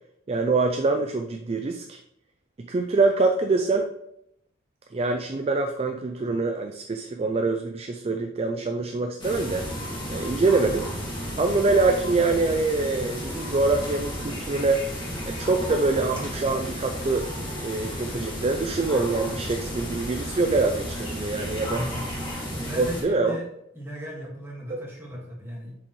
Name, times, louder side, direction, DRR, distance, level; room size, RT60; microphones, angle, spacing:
voice 1, 0.3-2.0 2.6-3.9 4.9-9.7 10.1-10.9 11.4-14.8 15.3-17.3 17.6-21.8 22.8-23.4 24.7-24.8, right 3 dB, 30° right, 5 dB, 0.4 m, -25 dB
sound 1, 9.2-23.0, equal, 25° left, 1.8 m, -33 dB
voice 2, 21.6-23.5 23.7-25.8, equal, 10° right, -3 dB, 1.8 m, -37 dB
7.0 x 4.9 x 3.1 m, 0.79 s
head